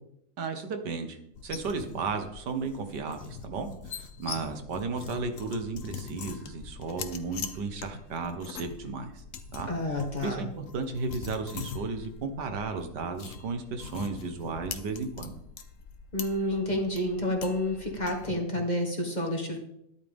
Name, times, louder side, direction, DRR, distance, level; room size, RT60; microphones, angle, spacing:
voice 1, 0.4-1.2 1.4-9.2 9.5-9.7 10.2-15.3, right 4 dB, 85° right, 7 dB, 1.9 m, -34 dB
sound 1, 1.3-18.3, left 6 dB, 55° left, 1.2 m, -42 dB
voice 2, 9.7-10.5 16.1-19.6, left 1 dB, 25° left, 1 dB, 2.1 m, -29 dB
13.0 x 11.5 x 3.6 m, 0.76 s
omnidirectional pair, 1.8 m